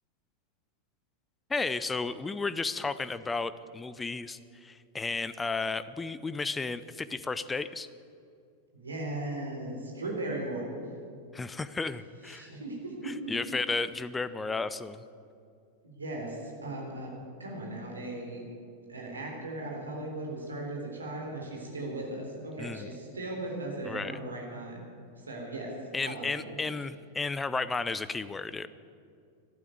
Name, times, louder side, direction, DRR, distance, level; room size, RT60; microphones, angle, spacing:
voice 1, 1.5-7.9 11.3-12.5 13.0-15.0 22.6-22.9 23.9-24.2 25.9-28.7, left 3 dB, 10° left, 15 dB, 0.6 m, -33 dB
voice 2, 8.7-10.6 12.2-13.3 15.8-17.1 17.4-18.5 18.9-24.8 25.2-25.7 26.0-26.6, right 2 dB, 75° right, -1 dB, 3.7 m, -37 dB
13.0 x 12.0 x 9.3 m, 2.4 s
figure-of-eight pair, 90°, 0 cm